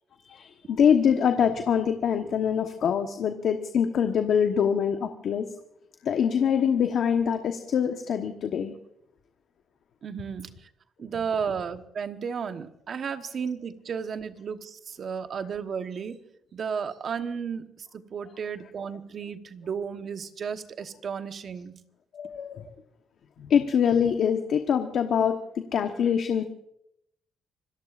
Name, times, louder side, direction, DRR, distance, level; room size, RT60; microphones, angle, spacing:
voice 1, 0.3-5.4 6.0-8.7 22.1-22.7 23.4-26.4, left 7 dB, 65° left, 6 dB, 1.1 m, -24 dB
voice 2, 10.0-10.7 11.0-16.2 16.5-21.7, right 6 dB, 55° right, 9 dB, 1.1 m, -33 dB
26.5 x 18.0 x 2.5 m, 0.77 s
cardioid pair, 90°, 0 cm